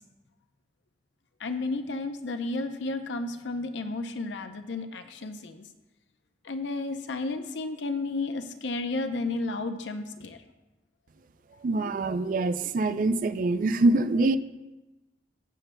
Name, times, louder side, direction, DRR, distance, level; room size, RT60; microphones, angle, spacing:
voice 1, 1.4-5.7 6.4-10.4, left 3 dB, 80° left, 8 dB, 0.6 m, -32 dB
voice 2, 11.6-14.4, right 2 dB, 45° right, 12 dB, 0.3 m, -24 dB
14.5 x 6.7 x 2.2 m, 1.1 s
head